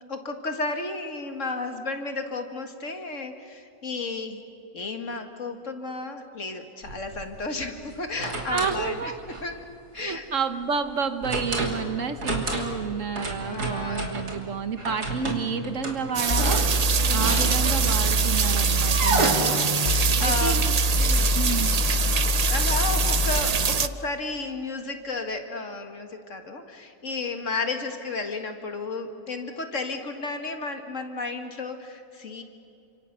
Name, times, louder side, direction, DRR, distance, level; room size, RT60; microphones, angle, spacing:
voice 1, 0.1-4.4 4.7-9.1 9.4-9.6 9.9-10.3 13.4-14.1 17.0-17.4 19.2-20.7 21.1-21.4 22.5-32.4, left 3 dB, 50° left, 6 dB, 2.2 m, -33 dB
sound 1, 6.8-7.2 7.9-8.8 9.3-9.5 11.2-11.8 12.1-12.8 13.1-14.4 14.8-18.1 18.9-19.3, right 2 dB, 85° right, 3.5 m, -30 dB
voice 2, 8.5-9.2 10.0-16.6 17.1-19.6 20.2-20.7 21.0-21.1 21.3-21.7, right 6 dB, 55° right, 9 dB, 1.4 m, -30 dB
sound 2, 16.1-23.9, right 6 dB, 70° right, 0.3 m, -25 dB
sound 3, 16.3-23.4, left 1 dB, 20° left, 1.4 m, -25 dB
30.0 x 26.0 x 6.8 m, 2.6 s
omnidirectional pair, 1.7 m